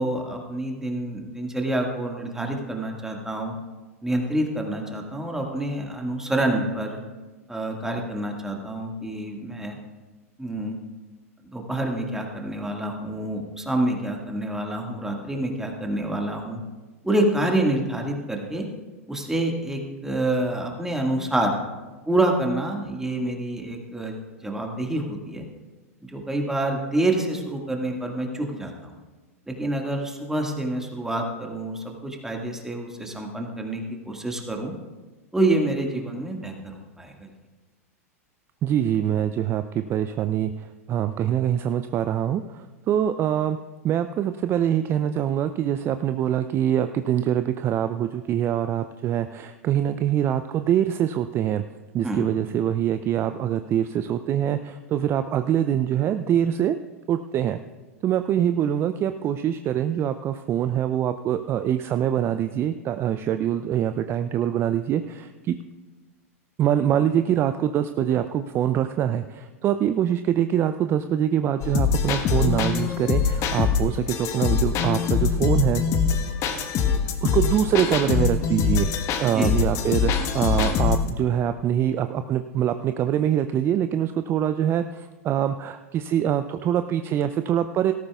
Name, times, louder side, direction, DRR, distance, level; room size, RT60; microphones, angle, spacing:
voice 1, 0.0-3.5 4.0-7.0 7.5-9.8 10.4-10.8 11.5-16.6 17.0-18.7 19.1-21.5 22.1-25.5 26.0-28.9 29.5-34.7 35.3-37.3 52.0-52.2 79.2-79.5, right 1 dB, 5° right, 1 dB, 1.8 m, -27 dB
voice 2, 38.6-43.6 43.8-51.6 51.9-56.8 57.1-57.6 58.0-65.6 66.6-75.8 77.2-78.9 79.2-87.9, right 10 dB, 30° right, 10 dB, 0.4 m, -24 dB
sound 1, 71.6-81.1, left 6 dB, 40° left, 1.2 m, -23 dB
17.5 x 13.5 x 2.4 m, 1.3 s
hypercardioid pair, 95°, 8 cm